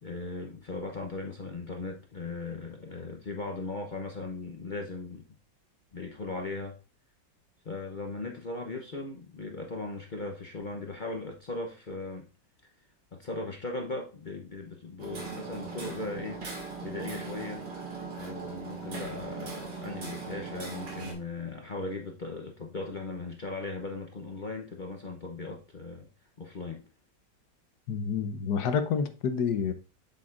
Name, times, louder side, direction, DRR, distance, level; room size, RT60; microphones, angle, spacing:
voice 1, 0.0-5.2 5.9-6.7 7.6-12.3 13.1-16.4 16.8-17.6 18.2-26.1 26.4-26.8, left 3 dB, 50° left, 0.6 m, -38 dB
Hammer, 15.0-21.1, right 4 dB, 70° right, 2.7 m, -39 dB
voice 2, 27.9-29.7, left 6 dB, 65° left, 1.3 m, -28 dB
7.8 x 7.7 x 2.5 m
omnidirectional pair, 2.0 m